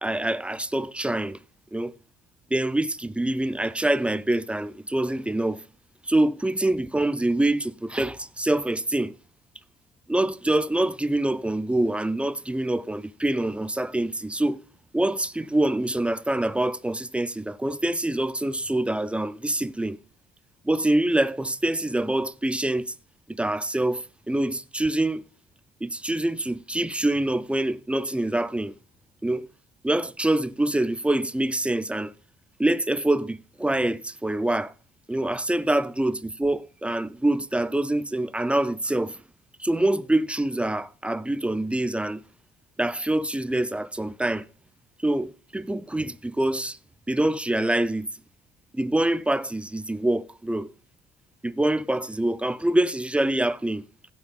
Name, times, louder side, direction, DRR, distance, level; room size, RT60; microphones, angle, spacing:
voice 1, 0.0-1.4 1.7-1.9 2.5-5.6 6.0-9.1 10.1-14.6 14.9-20.0 20.6-22.9 23.3-25.2 25.8-28.7 29.2-29.5 29.8-32.1 32.6-34.7 35.1-39.2 39.6-42.2 42.8-44.5 45.0-46.8 47.1-48.1 48.7-50.7 51.4-53.9, right 1 dB, 5° right, 0.6 m, -25 dB
16.0 x 6.3 x 3.8 m
cardioid pair, 110°, 17 cm